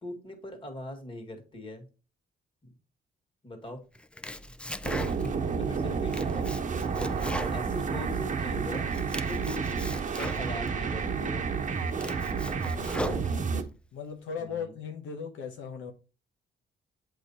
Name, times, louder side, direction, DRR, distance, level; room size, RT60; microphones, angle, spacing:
voice 1, 0.0-1.8 2.6-2.7 3.4-3.8 5.6-6.5 7.1-8.9 9.3-11.5 14.4-14.7, left 1 dB, 25° left, 4 dB, 1.9 m, -41 dB
Domestic sounds home sounds, 3.9-5.5 5.8-8.4 8.7-10.7 11.3-11.4 11.8-13.7, left 1 dB, 5° left, 0.4 m, -39 dB
sound 1, 4.8-13.6, right 5 dB, 40° right, 1.0 m, -30 dB
voice 2, 5.2-5.9 12.7-13.3 13.9-15.9, left 6 dB, 85° left, 3 dB, 1.0 m, -39 dB
8.1 x 3.2 x 4.1 m, 0.34 s
cardioid pair, 90°, 20 cm